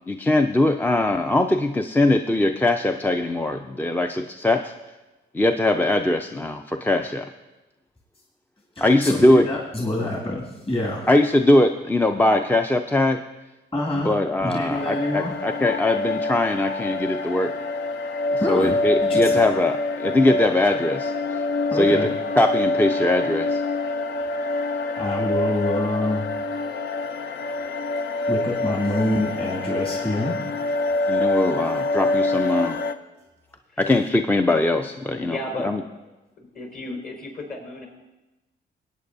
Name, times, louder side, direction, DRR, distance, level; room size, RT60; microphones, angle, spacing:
voice 1, 0.1-4.7 5.3-7.3 8.8-9.5 11.1-13.2 13.9-17.5 18.3-21.4 21.7-22.1 22.4-23.6 31.1-32.8 33.8-35.4 35.6-35.8, left 1 dB, 10° left, 6 dB, 0.4 m, -21 dB
voice 2, 8.8-11.1 13.7-14.1 14.4-15.4 18.4-19.4 21.7-22.1 25.0-26.3 28.3-30.4, left 1 dB, 30° left, -3 dB, 2.1 m, -26 dB
sound 1, 14.7-32.9, left 2 dB, 65° left, 0.6 m, -26 dB
voice 3, 35.2-35.7 36.4-37.9, left 2 dB, 50° left, 1 dB, 4.3 m, -33 dB
19.5 x 9.0 x 2.7 m, 1.1 s
cardioid pair, 90°, 20 cm